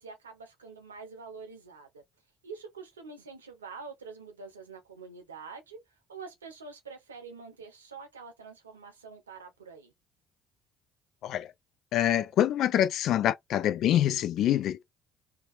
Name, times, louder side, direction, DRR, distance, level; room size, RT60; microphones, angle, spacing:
voice 1, 0.0-2.0 2.4-5.8 6.1-9.9, right 4 dB, 90° right, 0.7 m, -46 dB
voice 2, 11.9-14.8, left 11 dB, 60° left, 0.4 m, -25 dB
2.8 x 2.2 x 2.4 m
hypercardioid pair, 55°, 0 cm